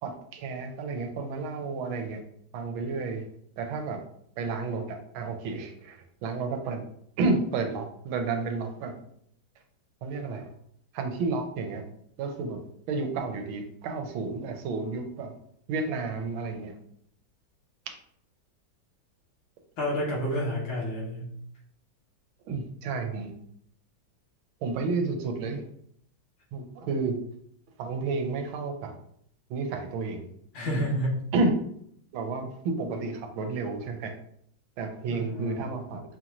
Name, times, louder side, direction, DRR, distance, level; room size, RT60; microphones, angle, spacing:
voice 1, 0.0-2.2 2.5-3.2 3.6-4.0 4.4-6.8 7.2-8.9 10.0-10.5 10.9-11.9 12.2-12.6 12.9-15.3 15.7-16.7 22.5-23.3 24.6-25.6 26.5-27.2 27.8-29.0 29.5-30.2 31.3-31.5 32.1-34.1 34.8-36.0, right 3 dB, 80° right, 5 dB, 1.5 m, -31 dB
voice 2, 19.8-21.3 30.5-31.2 35.1-35.6, equal, 75° left, -5 dB, 2.3 m, -29 dB
5.5 x 2.5 x 2.9 m, 0.69 s
omnidirectional pair, 2.2 m